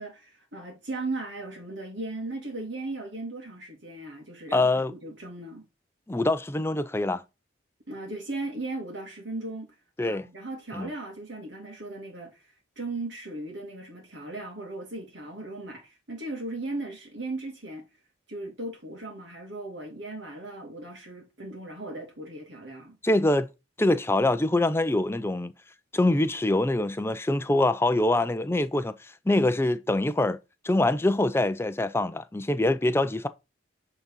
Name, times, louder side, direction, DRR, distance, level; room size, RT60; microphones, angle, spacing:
voice 1, 0.0-5.6 7.9-9.7 10.0-17.8 18.3-23.0, right 2 dB, 60° right, 2.2 m, -37 dB
voice 2, 4.5-4.9 6.1-7.2 10.0-10.3 10.7-10.9 23.0-23.5 23.8-25.5 25.9-28.9 29.3-30.4 30.6-33.3, left 2 dB, 10° left, 0.4 m, -24 dB
8.6 x 4.0 x 5.5 m
head